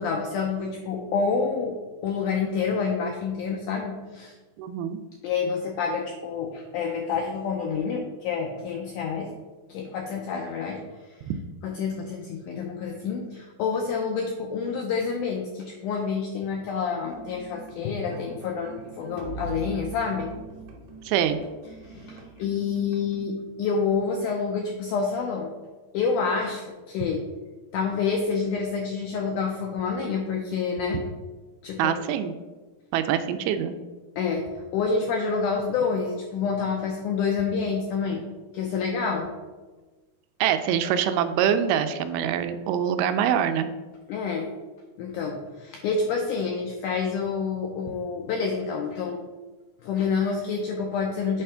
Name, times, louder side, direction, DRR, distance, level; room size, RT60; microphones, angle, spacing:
voice 1, 0.0-1.8 2.0-4.3 5.2-9.3 9.7-10.8 11.6-20.3 21.8-25.5 25.9-27.2 27.7-31.0 31.6-32.0 34.2-38.3 38.5-39.3 44.1-44.5 45.0-49.2 49.8-51.4, left 5 dB, 85° left, 2 dB, 1.8 m, -28 dB
voice 2, 4.6-5.0 11.3-11.4 21.1-21.4 31.8-32.3 32.9-33.7 40.4-43.7, right 9 dB, 85° right, 9 dB, 2.4 m, -24 dB
sound 1, 17.1-23.3, right 3 dB, 70° right, 2.3 m, -42 dB
8.3 x 3.4 x 5.5 m, 1.3 s
omnidirectional pair, 4.3 m